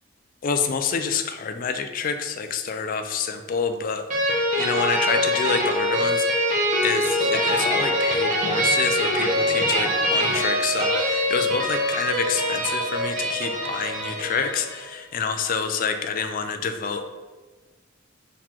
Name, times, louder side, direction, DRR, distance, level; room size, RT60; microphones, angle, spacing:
voice 1, 0.4-6.3 6.8-17.0, left 5 dB, 40° left, 7 dB, 0.3 m, -28 dB
sound 1, 4.1-14.8, equal, 40° right, 0.8 m, -23 dB
4.0 x 3.0 x 4.3 m, 1.3 s
head